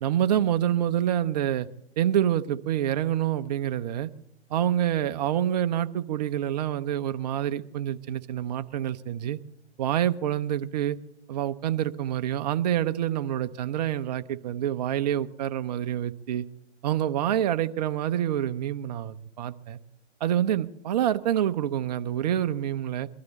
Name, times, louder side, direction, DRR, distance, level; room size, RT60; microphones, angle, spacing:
voice 1, 0.0-1.7 2.0-4.1 4.5-9.4 9.8-11.0 11.3-16.4 16.8-19.8 20.2-23.1, right 11 dB, 35° right, 11 dB, 0.8 m, -27 dB
23.0 x 12.5 x 4.1 m, 0.78 s
hypercardioid pair, 135°, 35 cm